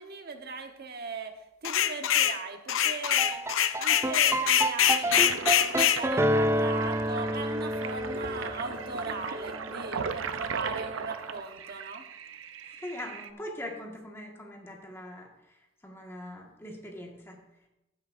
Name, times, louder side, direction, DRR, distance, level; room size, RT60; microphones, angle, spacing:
voice 1, 0.0-1.3 1.6-3.4 3.8-12.0, right 4 dB, 55° right, 5 dB, 1.1 m, -39 dB
sound 1, 1.6-2.4 2.7-6.0, left 10 dB, 80° left, 0.6 m, -24 dB
sound 2, 3.0-11.2, right 1 dB, 15° right, 0.4 m, -30 dB
Toilet flush, 4.2-13.3, right 6 dB, 75° right, 0.6 m, -38 dB
voice 2, 12.8-15.3 15.8-17.4, left 1 dB, 15° left, 0 dB, 1.6 m, -41 dB
15.5 x 8.7 x 2.6 m, 0.91 s
head